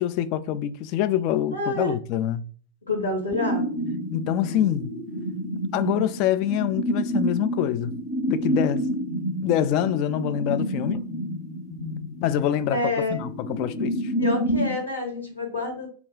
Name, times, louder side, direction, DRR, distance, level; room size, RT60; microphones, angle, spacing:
voice 1, 0.0-2.4 4.1-4.9 5.7-7.9 8.3-8.8 9.4-11.1 12.2-14.1, left 11 dB, 45° left, 0.3 m, -25 dB
voice 2, 1.5-1.9 2.9-3.7 12.7-13.2 14.2-15.9, left 2 dB, 80° left, 1.3 m, -27 dB
sound 1, 3.3-14.8, equal, 10° left, 0.8 m, -29 dB
3.4 x 2.3 x 3.6 m
figure-of-eight pair, 90°, 0 cm